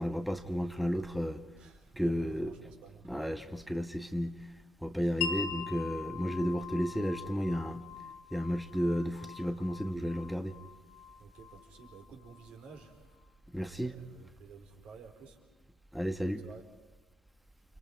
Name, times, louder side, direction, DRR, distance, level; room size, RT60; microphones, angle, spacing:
voice 1, 0.0-1.4 2.0-2.5 3.0-4.5 4.8-7.8 8.3-10.5 13.5-13.9 15.9-16.4, equal, ahead, 7 dB, 1.5 m, -33 dB
voice 2, 1.6-3.3 5.0-5.1 11.2-13.2 13.6-15.4 16.3-16.6, right 5 dB, 55° right, 2 dB, 4.9 m, -52 dB
Wind chime, 5.2-12.8, left 7 dB, 65° left, 1.5 m, -43 dB
30.0 x 28.5 x 4.8 m, 1.1 s
figure-of-eight pair, 55°, 2 cm